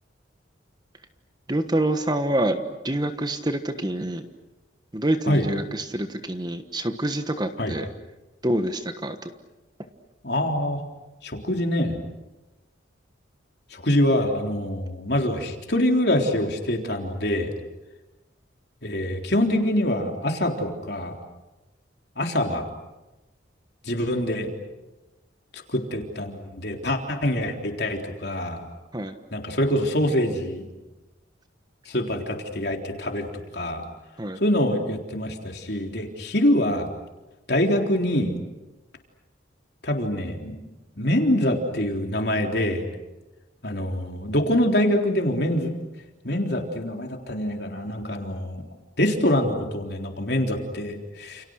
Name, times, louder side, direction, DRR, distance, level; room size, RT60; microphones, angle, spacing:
voice 1, 1.5-4.3 4.9-7.9 8.4-9.3 28.9-29.1 34.2-34.4, right 1 dB, 20° right, 8 dB, 1.3 m, -26 dB
voice 2, 10.2-10.8 11.2-12.0 13.7-17.5 18.8-21.2 22.2-22.6 23.9-24.5 25.5-28.6 29.3-30.6 31.9-33.8 34.4-36.9 37.5-38.3 39.8-40.6 41.0-42.9 43.6-45.7 46.2-48.6 49.0-51.4, left 1 dB, 55° left, 3 dB, 3.8 m, -25 dB
29.5 x 29.0 x 6.5 m, 1.1 s
head